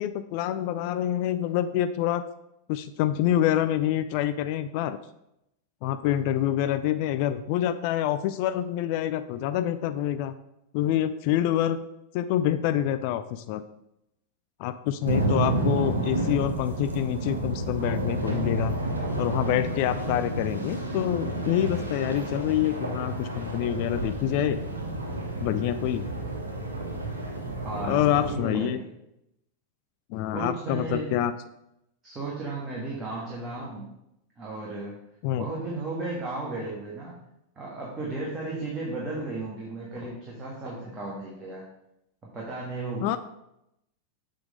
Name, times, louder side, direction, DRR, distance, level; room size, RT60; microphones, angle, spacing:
voice 1, 0.0-2.2 2.7-5.0 5.8-10.3 10.7-11.8 12.1-13.6 14.6-18.7 19.2-24.6 25.4-26.1 27.8-28.8 30.1-31.3 35.2-35.4 43.0-43.2, left 11 dB, 45° left, 11 dB, 0.3 m, -26 dB
sound 1, 15.0-28.3, right 2 dB, 80° right, 1.2 m, -30 dB
voice 2, 27.6-28.9 30.3-31.2 32.0-33.9 34.4-35.0 35.4-37.2 37.5-41.6 42.2-43.2, right 2 dB, 20° right, -4 dB, 1.6 m, -34 dB
7.0 x 3.7 x 4.9 m, 0.83 s
figure-of-eight pair, 90°, 0 cm